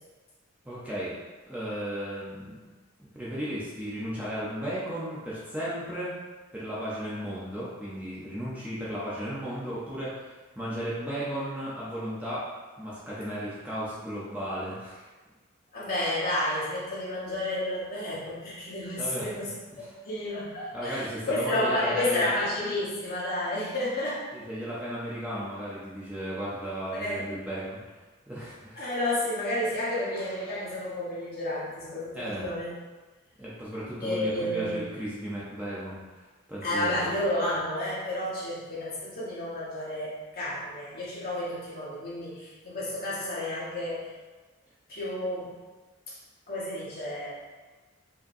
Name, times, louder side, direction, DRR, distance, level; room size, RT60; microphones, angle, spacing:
voice 1, 0.6-1.2 1.5-2.7 3.0-6.2 6.5-10.3 10.6-12.5 12.8-15.1 19.0-19.3 19.7-20.0 20.7-22.2 24.3-27.8 28.3-28.9 32.1-32.5 33.4-37.0, equal, 5° right, -9 dB, 0.6 m, -35 dB
voice 2, 15.7-19.6 20.0-24.2 26.9-27.2 28.8-32.8 34.0-34.8 36.6-44.1 44.9-45.5 46.1-46.2 46.5-47.3, left 1 dB, 45° left, -8 dB, 1.2 m, -31 dB
4.8 x 2.9 x 2.6 m, 1.3 s
head